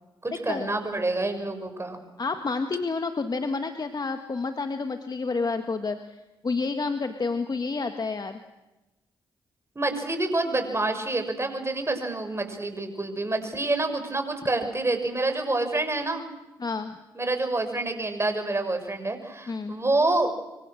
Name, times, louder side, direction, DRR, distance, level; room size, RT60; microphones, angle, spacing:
voice 1, 0.2-2.0 9.7-16.2 17.1-20.3, right 2 dB, 25° right, 6 dB, 6.4 m, -27 dB
voice 2, 2.2-6.2 6.4-8.4 16.6-17.0 19.5-19.8, left 4 dB, 40° left, 7 dB, 1.7 m, -29 dB
26.5 x 23.5 x 6.6 m, 1.0 s
hypercardioid pair, 40°, 11 cm